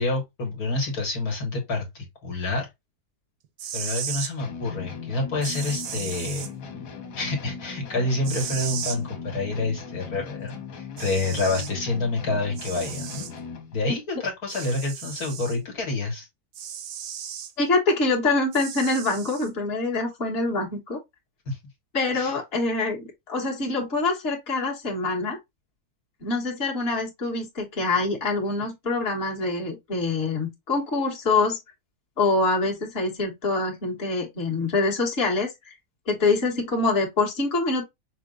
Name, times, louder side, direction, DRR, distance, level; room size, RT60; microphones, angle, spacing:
voice 1, 0.0-2.7 3.7-6.5 7.2-13.3 13.7-16.3 21.5-21.6 22.1-22.4, left 2 dB, 65° left, 1.8 m, -28 dB
sound 1, 3.4-4.3 5.4-6.5 8.2-9.0 10.5-10.6 11.0-11.7 12.6-13.3 14.5-15.6 16.5-17.5 18.5-19.5, right 9 dB, 80° right, 1.3 m, -35 dB
sound 2, 4.4-13.8, left 5 dB, 80° left, 1.6 m, -39 dB
voice 2, 17.6-21.0 21.9-25.4 26.2-31.6 32.2-35.8 36.1-37.8, left 3 dB, 40° left, 1.6 m, -25 dB
5.7 x 2.1 x 3.7 m
omnidirectional pair, 1.7 m